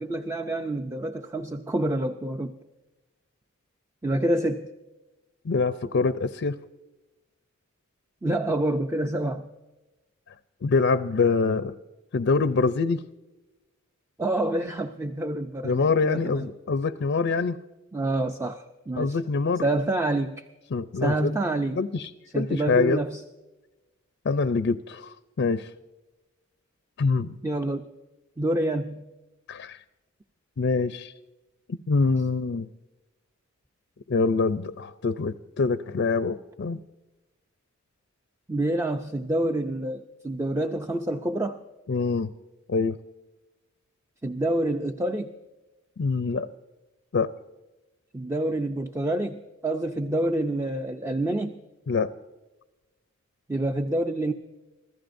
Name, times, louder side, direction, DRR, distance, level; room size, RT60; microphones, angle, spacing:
voice 1, 0.0-2.6 4.0-4.7 8.2-9.5 14.2-16.5 17.9-19.2 19.6-20.5 21.0-21.8 22.3-23.2 27.4-27.9 28.4-29.1 38.5-41.6 44.2-45.3 48.1-51.6 53.5-54.3, right 1 dB, 15° right, 6 dB, 0.5 m, -27 dB
voice 2, 5.4-6.6 10.6-11.7 12.1-13.0 15.6-17.6 19.0-19.6 20.7-21.3 21.8-22.1 22.3-23.0 24.2-25.7 27.0-27.4 29.5-29.8 30.6-31.1 31.7-32.7 34.1-36.8 41.9-42.3 42.7-43.0 46.0-46.5 47.1-47.3 51.9-52.1, left 4 dB, 55° left, 11 dB, 0.5 m, -25 dB
26.0 x 15.0 x 2.6 m, 1.1 s
head